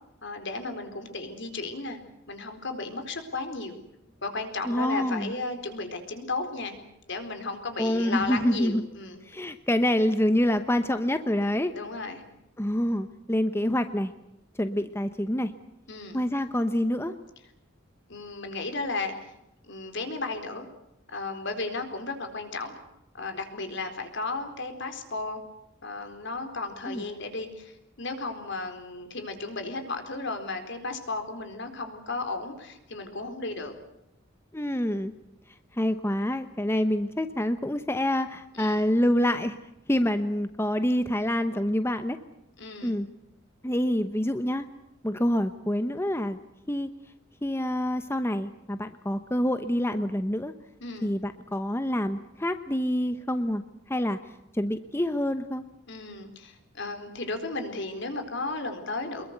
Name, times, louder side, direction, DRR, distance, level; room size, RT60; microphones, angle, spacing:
voice 1, 0.2-2.0 2.3-3.8 4.2-6.8 7.1-9.2 11.7-12.2 15.9-16.2 18.1-19.3 19.7-20.7 21.1-22.8 23.1-25.4 25.8-33.7 38.5-38.8 42.6-43.0 50.8-51.1 55.9-59.2, left 3 dB, 65° left, 7 dB, 4.2 m, -34 dB
voice 2, 4.6-5.3 7.8-8.8 9.2-11.7 12.6-14.1 14.6-15.5 16.1-17.1 26.9-27.0 34.5-35.1 35.7-39.6 39.9-42.2 42.8-43.1 43.6-44.7 45.0-46.4 46.7-46.9 47.4-50.5 51.0-53.6 53.9-54.2 54.5-55.6, left 1 dB, 15° left, 9 dB, 0.9 m, -26 dB
25.0 x 22.0 x 8.0 m, 0.84 s
head